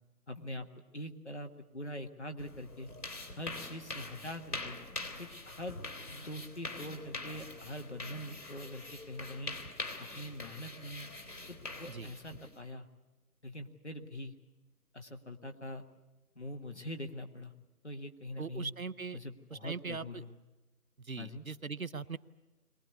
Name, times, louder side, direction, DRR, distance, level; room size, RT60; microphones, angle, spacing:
voice 1, 0.3-0.7 0.9-2.9 3.4-4.8 5.2-5.8 6.1-9.5 10.0-11.1 11.5-12.9 13.4-14.3 14.9-15.8 16.3-17.5 17.8-18.7 19.1-20.3 21.2-21.4, left 1 dB, 45° left, 5 dB, 1.5 m, -43 dB
sound 1, 2.4-12.6, left 2 dB, 70° left, 3.6 m, -44 dB
voice 2, 18.4-19.2 19.5-20.2 21.0-22.2, right 5 dB, 60° right, 17 dB, 0.7 m, -40 dB
22.5 x 19.5 x 8.3 m, 1.1 s
figure-of-eight pair, 175°, 46 cm